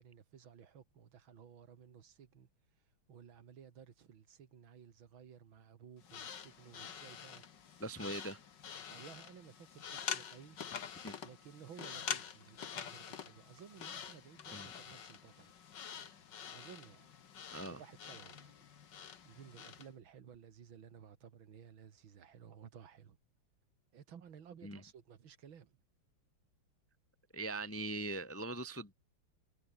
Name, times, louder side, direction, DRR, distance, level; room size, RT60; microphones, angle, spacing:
voice 1, 0.0-2.5 3.1-7.4 8.9-10.6 11.2-15.5 16.5-17.1 17.7-18.5 19.2-23.2 23.9-25.8, right 8 dB, 75° right, 2.6 m, -56 dB
sound 1, 6.0-19.9, left 8 dB, 60° left, 2.2 m, -46 dB
voice 2, 7.8-8.4 11.0-11.2 14.5-14.7 17.5-17.8 24.6-24.8 27.3-28.9, right 2 dB, 10° left, 0.8 m, -41 dB
omnidirectional pair, 2.2 m